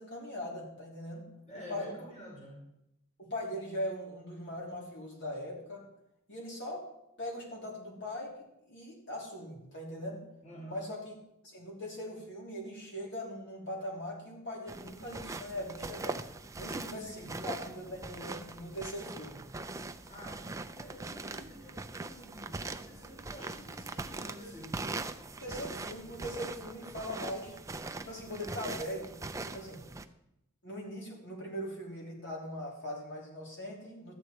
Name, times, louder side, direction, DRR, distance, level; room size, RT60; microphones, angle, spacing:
voice 1, 0.0-1.3 1.5-2.0 3.2-5.8 6.3-6.8 7.2-10.2 10.7-11.1 11.4-16.2 16.6-19.4 22.4-22.5 25.4-27.6 28.0-29.1 29.4-29.8 30.6-34.1, equal, 55° left, -3 dB, 3.3 m, -40 dB
voice 2, 1.4-2.6 10.4-10.9 16.6-17.4 20.1-24.8, equal, 30° left, -3 dB, 2.8 m, -49 dB
sound 1, 14.7-30.0, right 2 dB, 15° right, 0.4 m, -41 dB
13.0 x 8.9 x 4.5 m, 0.83 s
head